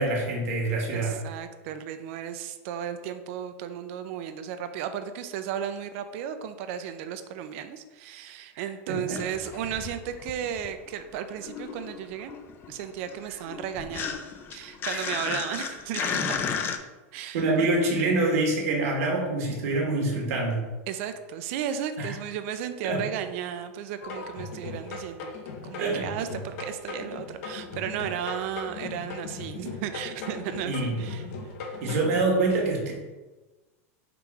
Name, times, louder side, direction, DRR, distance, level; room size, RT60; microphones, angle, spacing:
voice 1, 0.0-1.2 8.9-9.2 14.9-15.0 17.3-20.7 22.0-22.1 22.8-23.0 25.8-26.1 30.6-31.0 31.8-32.9, right 2 dB, 70° right, 0 dB, 1.3 m, -25 dB
voice 2, 0.9-12.3 12.7-14.2 14.5-16.4 17.1-17.7 20.9-25.3 25.6-31.2 31.9-32.1, right 9 dB, 55° right, 9 dB, 0.4 m, -34 dB
sound 1, 9.0-10.9 11.1-16.8, left 6 dB, 25° left, 0.4 m, -34 dB
sound 2, 24.0-32.3, left 4 dB, 60° left, 0.8 m, -38 dB
3.7 x 2.9 x 4.7 m, 1.2 s
supercardioid pair, 140°, 8 cm